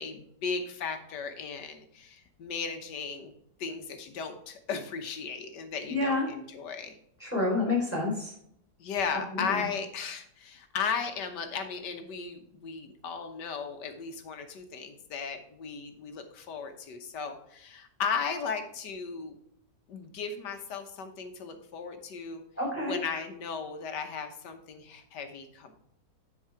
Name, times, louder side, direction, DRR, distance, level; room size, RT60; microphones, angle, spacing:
voice 1, 0.0-3.3 3.6-7.0 8.8-19.4 19.9-22.4 22.8-25.7, left 6 dB, 80° left, 6 dB, 1.7 m, -36 dB
voice 2, 5.9-6.2 7.2-8.3 9.3-9.6 22.6-23.0, left 2 dB, 5° left, -5 dB, 3.9 m, -28 dB
10.0 x 4.7 x 4.7 m, 0.70 s
omnidirectional pair, 1.8 m